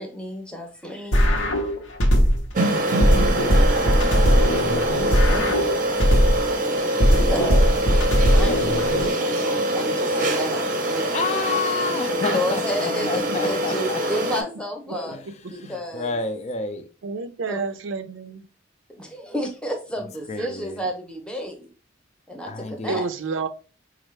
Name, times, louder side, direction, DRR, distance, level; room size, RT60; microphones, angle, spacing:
voice 1, 0.0-1.6 5.2-6.0 7.3-7.9 8.3-11.1 11.9-16.2 17.5-17.6 18.9-21.7 22.3-23.1, equal, 5° left, 0.7 m, -31 dB
sound 1, 1.1-2.5 3.0-6.5 7.0-9.1, equal, 80° left, 0.9 m, -19 dB
sound 2, 2.5-14.4, right 1 dB, 45° right, 0.6 m, -24 dB
voice 2, 4.0-4.8 11.1-14.0 14.9-15.2 15.5-16.9 20.3-20.8 22.5-23.0, left 4 dB, 35° left, 0.4 m, -30 dB
voice 3, 17.0-18.4 20.4-20.5 22.9-23.5, right 4 dB, 85° right, 0.4 m, -29 dB
4.3 x 2.4 x 3.1 m
head